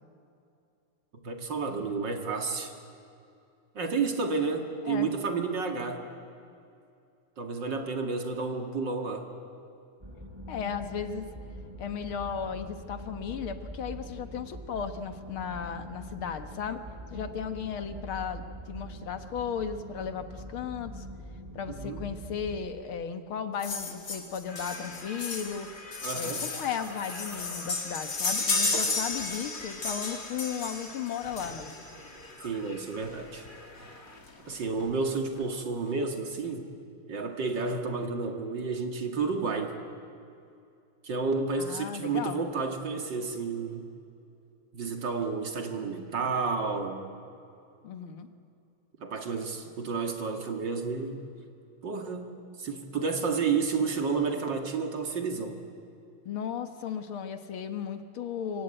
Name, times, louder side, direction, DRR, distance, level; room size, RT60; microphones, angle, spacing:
voice 1, 1.2-2.7 3.7-6.0 7.4-9.3 21.7-22.1 26.0-26.5 32.4-33.5 34.5-36.7 37.1-39.8 41.0-43.9 44.7-47.1 49.0-51.2 51.8-55.6, right 4 dB, 55° right, 4 dB, 2.7 m, -31 dB
sound 1, 10.0-22.7, equal, 10° right, 4.5 m, -43 dB
voice 2, 10.5-11.3 11.8-16.8 17.1-21.1 21.5-25.7 26.1-31.9 41.6-42.4 47.8-48.3 56.3-58.6, left 7 dB, 70° left, 8 dB, 2.1 m, -35 dB
sound 2, 23.6-31.9 33.0-33.1 33.5-33.6 33.8-33.9 34.3-34.9 35.4-35.5, left 3 dB, 40° left, 2.7 m, -33 dB
sound 3, 24.5-34.2, left 2 dB, 25° left, 2.0 m, -47 dB
26.0 x 24.0 x 9.0 m, 2.5 s
omnidirectional pair, 2.4 m